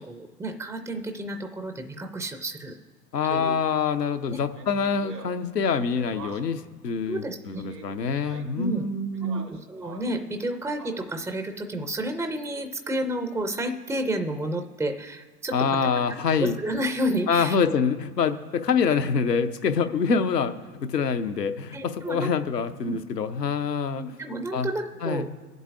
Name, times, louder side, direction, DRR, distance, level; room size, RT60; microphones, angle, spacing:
voice 1, 0.0-2.8 3.3-3.6 4.3-4.4 7.1-7.7 8.6-8.9 9.3-15.5 16.4-17.6 19.7-19.8 21.7-22.3 22.8-23.0 23.9-25.3, right 1 dB, 5° right, 6 dB, 0.4 m, -31 dB
voice 2, 3.1-9.5 15.5-16.6 17.3-20.5 20.8-24.0 24.5-24.7 25.0-25.3, left 5 dB, 85° left, 9 dB, 0.8 m, -25 dB
Speech, 4.5-6.7 7.5-8.7 9.1-10.2 10.6-11.3, right 3 dB, 80° right, 1.5 m, -45 dB
23.5 x 8.0 x 2.5 m, 1.5 s
figure-of-eight pair, 80°, 48 cm